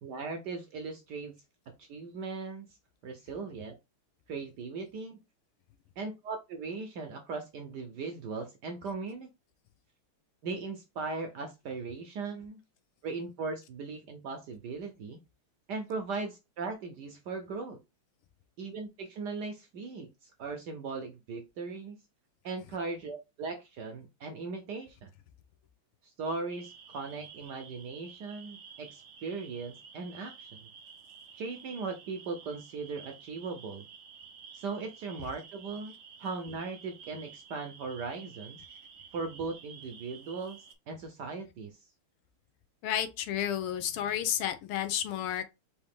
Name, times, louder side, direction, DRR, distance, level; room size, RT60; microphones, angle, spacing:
voice 1, 0.0-1.3 1.8-2.6 3.0-3.7 4.3-5.2 6.0-9.3 10.4-12.6 13.0-15.2 15.7-17.8 18.6-22.0 22.4-25.1 26.0-30.6 31.3-33.9 34.5-38.6 39.1-40.6 40.9-41.8, right 4 dB, 70° right, 1.0 m, -38 dB
sound 1, 26.5-40.7, right 6 dB, 85° right, 0.7 m, -52 dB
voice 2, 42.8-45.4, left 10 dB, 85° left, 1.7 m, -31 dB
4.7 x 2.8 x 3.5 m
omnidirectional pair, 2.4 m